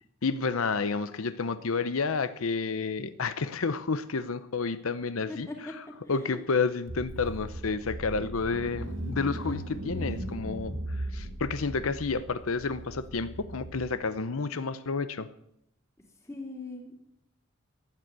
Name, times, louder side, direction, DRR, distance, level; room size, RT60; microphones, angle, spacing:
voice 1, 0.2-5.8 6.1-15.3, left 4 dB, 90° left, 13 dB, 0.7 m, -30 dB
voice 2, 6.0-6.4 16.2-17.0, left 2 dB, 15° left, 1 dB, 2.9 m, -40 dB
Car / Engine, 6.9-13.9, right 1 dB, 65° right, 1.8 m, -38 dB
13.5 x 9.0 x 8.2 m, 0.77 s
head